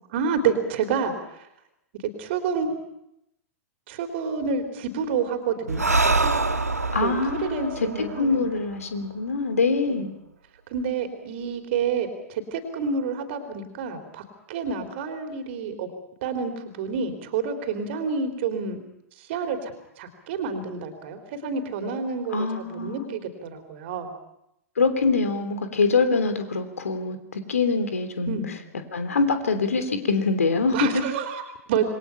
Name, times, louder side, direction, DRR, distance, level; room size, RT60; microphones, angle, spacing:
voice 1, 0.1-1.5 2.2-2.7 3.9-6.3 7.0-7.1 7.5-8.5 9.9-10.0 10.7-15.9 16.2-18.8 19.2-24.1 28.3-28.5 30.7-31.8, right 5 dB, 50° right, 7 dB, 3.5 m, -29 dB
Breathing, 5.7-9.2, right 3 dB, 85° right, 1.5 m, -25 dB
voice 2, 6.9-7.9 8.2-10.1 22.3-23.2 24.8-28.4 28.9-31.0, left 4 dB, 70° left, 9 dB, 3.2 m, -24 dB
27.5 x 22.5 x 5.8 m, 0.81 s
figure-of-eight pair, 100°, 8 cm